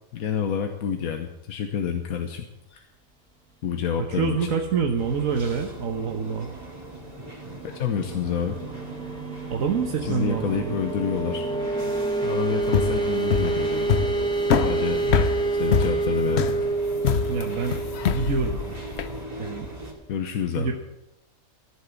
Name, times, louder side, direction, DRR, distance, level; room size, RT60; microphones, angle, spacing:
voice 1, 0.1-2.9 3.6-4.4 7.6-8.6 10.0-11.5 12.2-14.0 14.6-15.1 15.5-16.5 20.1-20.8, left 7 dB, 90° left, 5 dB, 1.4 m, -28 dB
voice 2, 4.0-6.5 9.5-10.8 17.3-17.8 18.1-18.8 19.4-19.7 20.6-20.8, right 5 dB, 70° right, 2 dB, 1.5 m, -26 dB
sound 1, 5.0-19.9, right 1 dB, 30° right, 2.6 m, -40 dB
sound 2, 7.2-19.7, right 3 dB, 5° left, 1.4 m, -28 dB
sound 3, 12.6-19.2, left 7 dB, 55° left, 0.9 m, -25 dB
14.0 x 8.0 x 8.3 m, 0.92 s
omnidirectional pair, 1.5 m